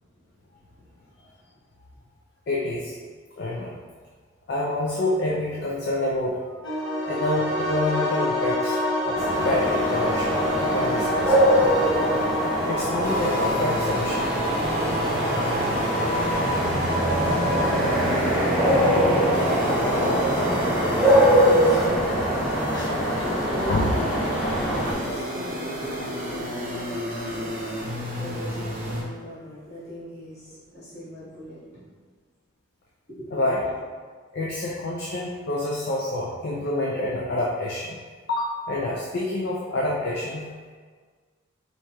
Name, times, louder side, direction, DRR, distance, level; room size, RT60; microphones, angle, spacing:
voice 1, 0.4-1.3 19.6-24.1 24.6-31.9 33.1-33.3, equal, 35° left, -11 dB, 1.5 m, -39 dB
voice 2, 2.5-2.9 3.4-3.8 4.5-6.5 7.0-8.8 9.0-10.4 10.7-11.4 12.7-14.3 15.3-15.4 18.0-18.4 19.1-19.2 20.2-20.3 22.7-22.9 23.7-23.9 25.1-25.2 33.3-33.6 34.3-38.0 38.3-40.5, left 1 dB, 50° left, -4 dB, 0.4 m, -27 dB
sound 1, 6.6-18.0, left 1 dB, 70° left, 0.8 m, -27 dB
sound 2, 9.1-24.9, equal, ahead, 0.7 m, -23 dB
sound 3, 13.0-29.0, equal, 40° right, 0.6 m, -32 dB
4.6 x 2.7 x 2.2 m, 1.6 s
head